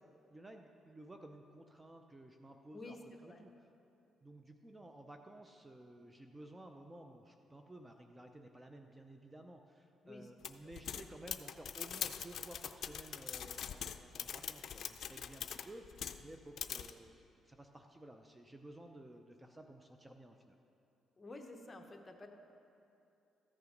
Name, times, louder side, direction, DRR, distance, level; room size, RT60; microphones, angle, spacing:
voice 1, 0.0-3.0 3.2-3.5 4.2-17.1 17.4-20.5, right 1 dB, 15° right, 5 dB, 0.6 m, -54 dB
voice 2, 2.7-3.4 10.0-10.3 10.6-10.7 21.2-22.3, left 2 dB, 25° left, 3 dB, 1.1 m, -51 dB
sound 1, 10.4-16.3 16.6-16.9, left 8 dB, 65° left, 0.4 m, -43 dB
14.0 x 6.8 x 5.2 m, 2.8 s
cardioid pair, 90°, 0 cm